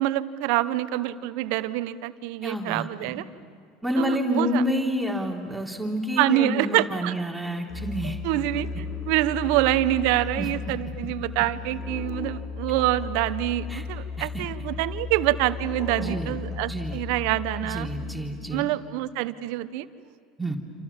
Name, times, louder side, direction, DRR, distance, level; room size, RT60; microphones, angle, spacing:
voice 1, 0.0-3.2 4.0-4.6 6.2-7.1 8.2-17.9 18.5-19.9, right 15 dB, 70° right, 13 dB, 1.1 m, -26 dB
voice 2, 2.4-3.2 3.8-8.2 10.4-10.5 13.7-13.8 14.2-14.3 16.0-17.0 17.5-18.7 20.4-20.6, equal, 5° right, 0 dB, 3.6 m, -29 dB
Musical instrument, 7.7-18.5, left 5 dB, 35° left, 3.3 m, -35 dB
28.5 x 27.5 x 7.3 m, 2.2 s
hypercardioid pair, 80°, 0 cm